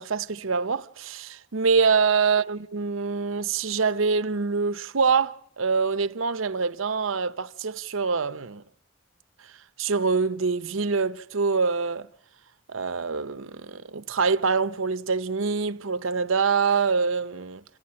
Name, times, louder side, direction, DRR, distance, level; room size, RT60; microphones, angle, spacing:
voice 1, 0.0-8.6 9.8-12.1 12.7-17.6, right 5 dB, 90° right, 0.8 m, -25 dB
27.5 x 15.5 x 8.6 m
head